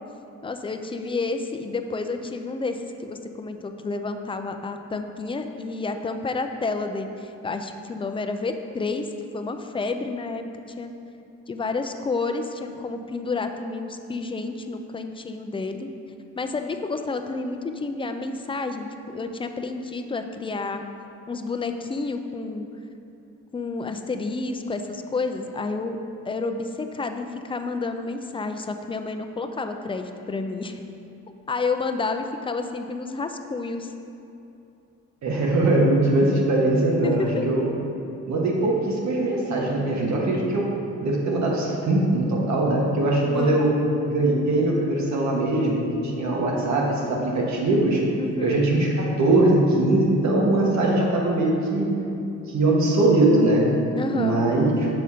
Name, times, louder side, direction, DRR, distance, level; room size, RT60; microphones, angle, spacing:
voice 1, 0.4-9.1 9.3-10.4 10.8-10.9 11.5-15.9 16.4-20.8 21.3-22.7 23.5-26.0 26.3-30.8 31.5-33.9 37.0-37.4 43.3-43.6 48.2-48.7 54.0-54.5, left 3 dB, 15° left, 6 dB, 0.4 m, -30 dB
voice 2, 35.2-37.7 38.3-40.7 41.0-43.7 44.1-48.0 48.4-51.9 52.5-53.7 54.1-54.9, right 2 dB, 65° right, -2 dB, 1.4 m, -21 dB
6.7 x 4.2 x 4.9 m, 2.7 s
cardioid pair, 90°, 30 cm